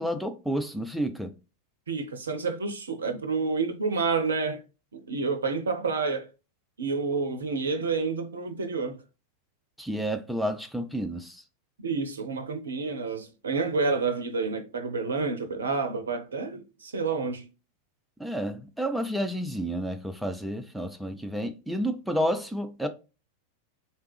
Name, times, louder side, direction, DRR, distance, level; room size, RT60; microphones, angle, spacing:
voice 1, 0.0-1.3 9.8-11.4 18.2-22.9, equal, ahead, 0.5 m, -30 dB
voice 2, 1.9-4.6 4.9-6.3 6.8-9.0 11.8-17.5, right 4 dB, 70° right, 0.5 m, -29 dB
3.3 x 2.8 x 3.2 m
figure-of-eight pair, 90°, 0 cm